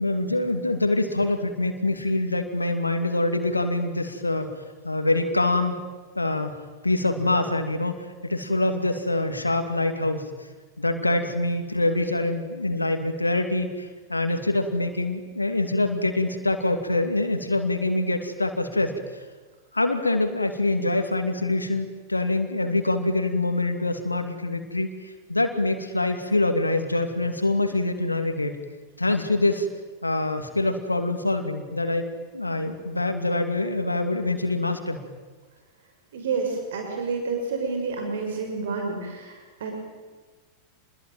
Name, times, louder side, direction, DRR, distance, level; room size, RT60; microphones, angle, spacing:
voice 1, 0.0-4.5 4.8-5.7 6.2-6.5 6.8-7.9 8.2-10.2 10.8-18.9 19.7-28.6 29.0-29.7 30.0-32.1 32.3-35.0, left 2 dB, 80° left, 7 dB, 2.5 m, -25 dB
voice 2, 36.1-39.7, right 4 dB, 60° right, 3 dB, 6.5 m, -29 dB
28.5 x 21.5 x 9.2 m, 1.3 s
figure-of-eight pair, 90°, 0 cm